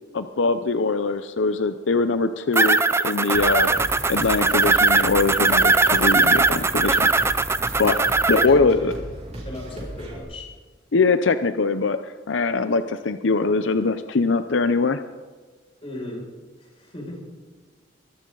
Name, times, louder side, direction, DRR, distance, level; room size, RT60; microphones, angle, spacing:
voice 1, 0.1-3.7 4.1-7.1 7.8-8.0 8.3-8.9 10.9-15.0, left 3 dB, 80° left, 10 dB, 0.6 m, -22 dB
sound 1, 2.5-8.5, right 3 dB, 15° right, 0.5 m, -20 dB
sound 2, 3.3-10.2, right 1 dB, 35° right, 5.6 m, -36 dB
voice 2, 8.3-8.9 9.4-10.5 15.8-16.3 16.6-17.2, left 1 dB, 30° left, -2 dB, 6.2 m, -35 dB
23.5 x 14.0 x 4.0 m, 1.4 s
head